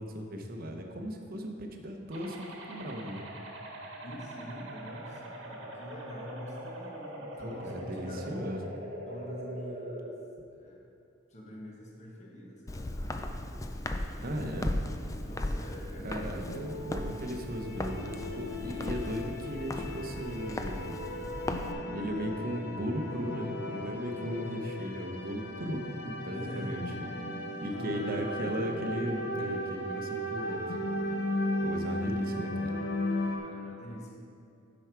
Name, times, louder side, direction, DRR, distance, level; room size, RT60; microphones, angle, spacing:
voice 1, 0.0-3.2 7.4-8.6 14.2-14.7 16.0-21.0 21.6-26.8 27.6-30.8 31.6-32.8, equal, 45° right, 3 dB, 0.9 m, -37 dB
sound 1, 2.1-10.1, right 1 dB, 75° right, 1.4 m, -43 dB
voice 2, 4.0-8.6 9.0-10.1 10.5-10.8 11.3-12.9 15.2-16.4 18.7-19.0 26.3-26.7 27.8-28.2 31.5-32.0 33.1-34.1, equal, 35° left, -2 dB, 1.3 m, -45 dB
Walk footsteps, 12.7-21.7, left 1 dB, 15° left, 0.4 m, -37 dB
sound 2, 16.5-33.4, left 1 dB, 55° left, 1.0 m, -36 dB
9.3 x 6.2 x 4.6 m, 2.5 s
head